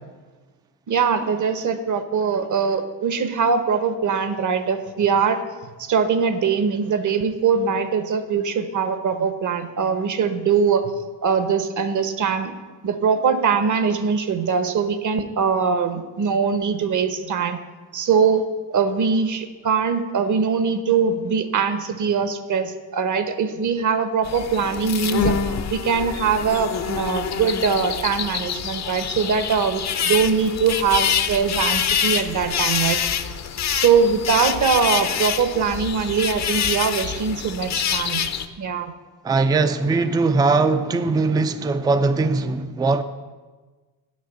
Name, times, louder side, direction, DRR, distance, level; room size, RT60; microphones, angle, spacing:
voice 1, 0.9-5.4 5.8-10.8 11.2-12.5 12.8-17.6 17.9-25.4 25.7-33.0 33.7-38.3 38.6-38.9, right 6 dB, 45° right, 1.0 m, -22 dB
sound 1, 24.2-38.5, left 7 dB, 40° left, 0.7 m, -26 dB
voice 2, 39.2-43.0, right 3 dB, 10° right, 0.4 m, -20 dB
7.9 x 6.6 x 8.0 m
cardioid pair, 105°, 43 cm